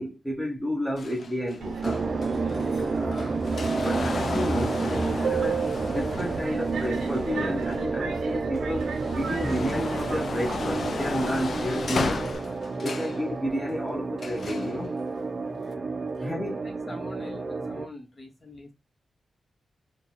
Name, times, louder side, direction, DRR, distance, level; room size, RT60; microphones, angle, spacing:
voice 1, 0.0-2.1 3.0-3.4 3.7-8.9 9.1-12.3 12.7-15.0 16.2-16.7, equal, 5° left, 0.8 m, -31 dB
sound 1, 1.0-8.2 8.6-13.2 14.2-14.7 15.6-15.7, left 4 dB, 60° left, 0.5 m, -35 dB
Subway metro underground, 1.6-12.4, right 5 dB, 85° right, 0.7 m, -34 dB
sound 2, 1.8-17.9, right 3 dB, 40° right, 0.5 m, -31 dB
voice 2, 12.7-13.3 15.4-15.9 16.2-16.3 16.6-18.7, left 2 dB, 40° left, 1.3 m, -45 dB
3.2 x 2.3 x 4.0 m
wide cardioid pair, 100°, 0 cm